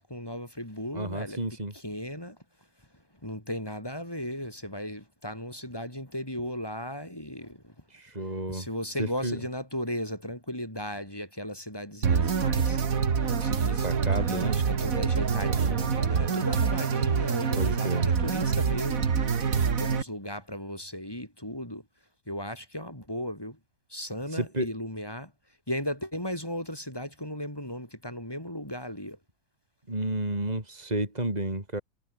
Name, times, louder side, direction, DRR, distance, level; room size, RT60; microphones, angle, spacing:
voice 1, 0.0-1.4 1.7-2.4 3.2-7.7 8.5-12.8 13.3-19.4 19.8-21.8 22.3-23.6 23.9-25.3 25.7-29.2, equal, 15° left, 5.6 m, -36 dB
voice 2, 0.9-1.7 7.9-8.7 9.0-9.4 13.8-14.6 15.3-15.8 17.6-18.1 24.3-24.7 29.9-31.8, right 1 dB, 25° right, 5.0 m, -31 dB
sound 1, 12.0-20.0, right 6 dB, 60° right, 2.1 m, -26 dB
omnidirectional pair, 1.6 m